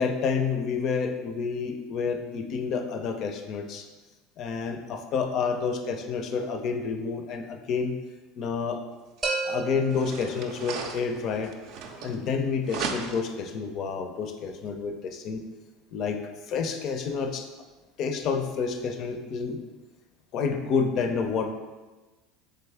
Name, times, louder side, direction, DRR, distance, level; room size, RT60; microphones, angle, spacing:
voice 1, 0.0-3.9 4.4-8.0 8.4-8.8 9.4-11.5 12.0-15.4 15.9-16.2 16.5-17.5 18.0-19.6 20.3-21.5, left 5 dB, 50° left, 6 dB, 0.4 m, -29 dB
sound 1, 9.2-11.1, right 3 dB, 20° right, 0.7 m, -33 dB
sound 2, 9.2-9.3 9.8-12.4 12.7-13.4, right 5 dB, 65° right, 0.4 m, -36 dB
3.7 x 3.3 x 3.5 m, 1.2 s
supercardioid pair, 110°, 0 cm